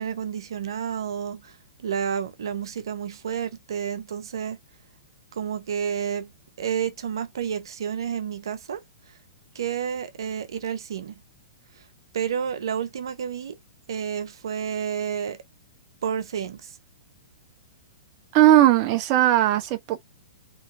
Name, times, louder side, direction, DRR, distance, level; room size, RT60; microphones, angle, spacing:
voice 1, 0.0-1.5 1.8-4.6 5.3-6.3 6.6-8.8 9.5-11.2 12.1-13.6 13.9-15.4 16.0-16.7, right 7 dB, 70° right, 0.8 m, -30 dB
voice 2, 18.3-20.1, right 13 dB, 40° right, 0.6 m, -18 dB
3.7 x 3.1 x 2.6 m
hypercardioid pair, 115°, 3 cm